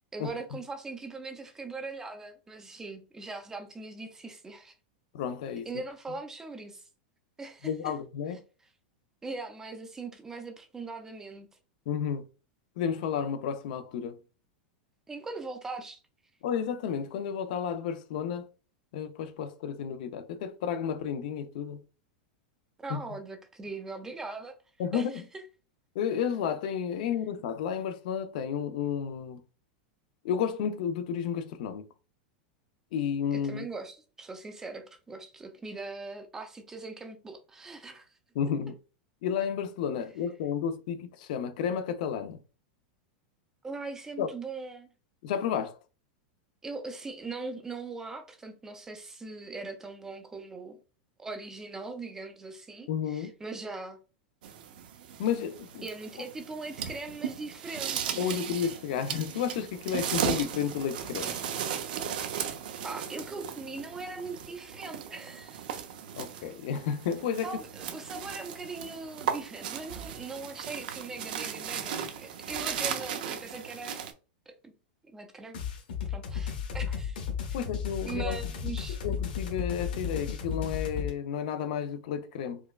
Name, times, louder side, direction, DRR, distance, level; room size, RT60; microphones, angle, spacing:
voice 1, 0.1-4.7 5.7-6.8 7.4-7.9 9.2-11.5 15.1-16.0 22.8-24.6 24.9-25.2 33.3-38.1 43.6-44.9 46.6-50.8 51.2-54.0 55.8-58.4 62.8-65.7 67.4-74.0 74.5-74.7 75.0-75.6 76.1-77.2 78.1-79.0, right 3 dB, 10° right, 0.4 m, -40 dB
voice 2, 5.1-5.7 7.6-8.4 11.9-12.2 12.8-14.2 16.4-18.5 18.9-21.8 22.9-23.0 24.8-25.2 25.9-29.4 30.2-31.9 32.9-33.7 38.3-38.7 39.2-42.4 44.2-44.3 45.2-45.8 52.9-53.3 55.2-55.9 58.2-61.4 66.2-67.5 77.5-78.4 78.9-82.6, left 8 dB, 60° left, 0.5 m, -32 dB
sound 1, 54.4-74.1, right 9 dB, 70° right, 0.6 m, -36 dB
sound 2, 75.5-81.1, left 7 dB, 90° left, 1.1 m, -34 dB
4.5 x 2.2 x 2.3 m
supercardioid pair, 155°, 5 cm